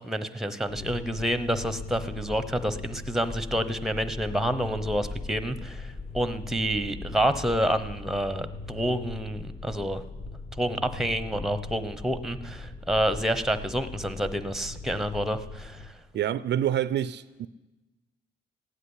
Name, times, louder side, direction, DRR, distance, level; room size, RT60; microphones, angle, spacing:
voice 1, 0.0-10.0 10.6-15.9, equal, ahead, 0.9 m, -28 dB
sound 1, 0.7-15.9, left 3 dB, 45° left, 2.4 m, -41 dB
sound 2, 0.7-15.3, left 3 dB, 25° left, 1.6 m, -44 dB
voice 2, 16.1-17.5, right 11 dB, 60° right, 0.5 m, -27 dB
15.5 x 8.2 x 9.8 m
cardioid pair, 90°, 20 cm